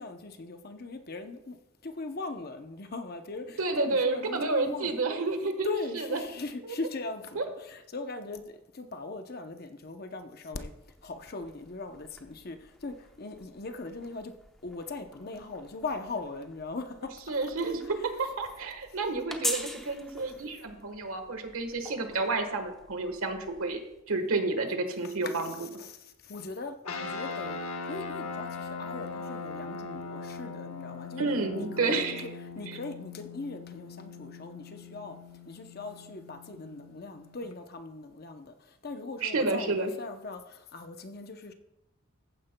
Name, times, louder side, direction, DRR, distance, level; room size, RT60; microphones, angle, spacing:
voice 1, 0.0-1.6 1.8-4.9 5.6-10.7 11.0-14.3 14.6-17.1 25.0-27.6 27.9-31.2 31.5-35.2 35.5-41.5, left 3 dB, 45° left, 7 dB, 0.7 m, -40 dB
voice 2, 3.6-5.7 5.9-6.2 6.6-6.7 7.3-7.4 17.3-23.8 24.1-25.5 31.2-32.2 39.2-39.9, right 3 dB, 80° right, 6 dB, 1.3 m, -30 dB
sound 1, 10.6-24.0, equal, ahead, 0.7 m, -44 dB
sound 2, 26.8-37.5, left 4 dB, 80° left, 1.1 m, -40 dB
14.5 x 9.6 x 2.2 m, 0.88 s
head